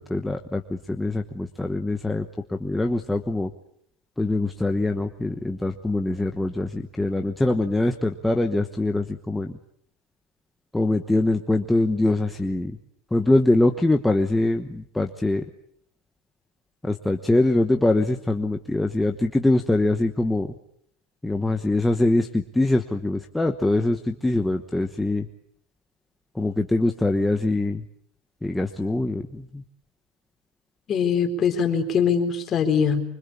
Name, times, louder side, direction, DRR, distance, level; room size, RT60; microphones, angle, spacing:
voice 1, 0.0-3.5 4.2-9.5 10.7-12.8 13.1-15.4 16.8-20.5 21.2-25.3 26.3-27.8 28.4-29.6, left 2 dB, 5° left, 4 dB, 1.1 m, -23 dB
voice 2, 30.9-33.0, left 6 dB, 25° left, 4 dB, 4.1 m, -22 dB
25.0 x 25.0 x 8.5 m, 0.70 s
cardioid pair, 160°, 0 cm